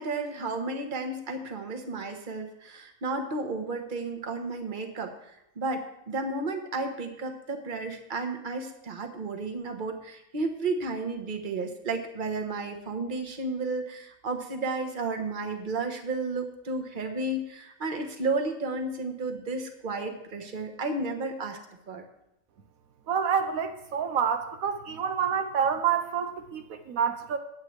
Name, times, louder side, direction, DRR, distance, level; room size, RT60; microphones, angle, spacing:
voice 1, 0.0-21.6 21.9-22.0, right 3 dB, 40° right, 5 dB, 1.3 m, -32 dB
voice 2, 23.1-27.4, right 7 dB, 80° right, 7 dB, 1.2 m, -28 dB
17.5 x 8.2 x 3.3 m, 0.83 s
omnidirectional pair, 1.5 m